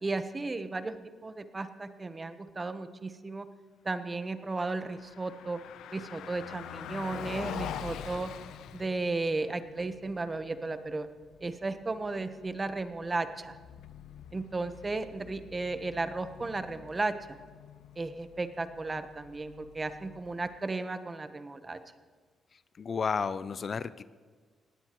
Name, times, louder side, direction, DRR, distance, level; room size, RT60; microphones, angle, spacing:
voice 1, 0.0-1.0 1.2-3.5 3.8-5.6 5.9-8.3 8.7-11.1 11.4-13.6 14.3-17.4 18.0-21.8, right 3 dB, 25° right, 10 dB, 1.0 m, -34 dB
Car passing by, 4.6-20.7, left 9 dB, 85° left, 0.6 m, -46 dB
voice 2, 22.8-24.0, left 5 dB, 45° left, 15 dB, 0.4 m, -32 dB
19.5 x 15.5 x 3.0 m, 1.5 s
cardioid pair, 100°, 0 cm